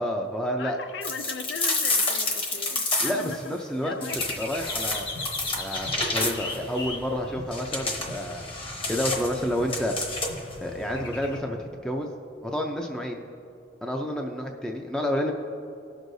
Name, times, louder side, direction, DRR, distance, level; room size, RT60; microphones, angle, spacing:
voice 1, 0.0-0.8 3.0-3.9 4.4-5.1 5.6-8.5 8.9-10.0 10.6-12.1 12.4-13.2 13.8-15.3, equal, 5° left, 1 dB, 0.4 m, -29 dB
voice 2, 0.6-4.2, left 5 dB, 85° left, 8 dB, 0.4 m, -38 dB
sound 1, 1.0-3.4 4.0-6.6 7.5-10.5, left 3 dB, 30° left, 1.0 m, -29 dB
sound 2, 4.1-11.4, left 2 dB, 70° left, 1.2 m, -38 dB
18.0 x 6.3 x 2.6 m, 2.7 s
head